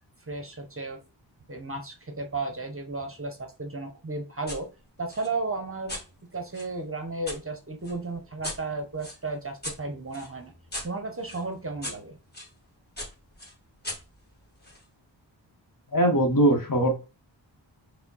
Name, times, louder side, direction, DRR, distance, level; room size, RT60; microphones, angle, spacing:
voice 1, 0.3-1.0 1.5-4.7 5.0-6.0 6.3-10.5 10.8-12.2, right 3 dB, 30° right, 4 dB, 0.7 m, -34 dB
sound 1, 4.5-4.6 5.1-7.4 7.8-12.5 13.0-14.8, left 1 dB, 20° left, 1.5 m, -40 dB
voice 2, 15.9-16.9, right 1 dB, 45° left, 3 dB, 1.0 m, -21 dB
4.8 x 2.1 x 3.9 m, 0.31 s
wide cardioid pair, 85°, 46 cm